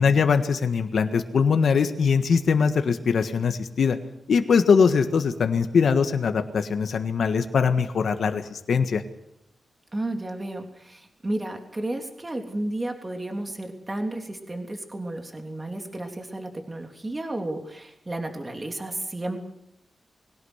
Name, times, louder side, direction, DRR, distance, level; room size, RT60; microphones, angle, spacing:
voice 1, 0.0-4.0 4.3-9.0, left 5 dB, 75° left, 7 dB, 1.6 m, -22 dB
voice 2, 9.9-19.4, right 1 dB, 20° right, 4 dB, 3.3 m, -32 dB
22.5 x 17.5 x 8.2 m, 0.79 s
wide cardioid pair, 110°, 0 cm